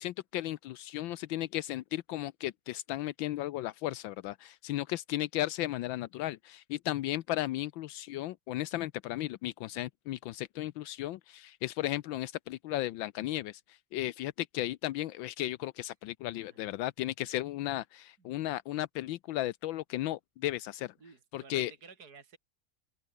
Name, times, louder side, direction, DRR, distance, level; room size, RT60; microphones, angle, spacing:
voice 1, 0.0-20.9 21.3-21.7, left 15 dB, 85° left, 1.4 m, -35 dB
voice 2, 21.0-22.4, right 5 dB, 55° right, 3.4 m, -54 dB
open air
omnidirectional pair, 2.1 m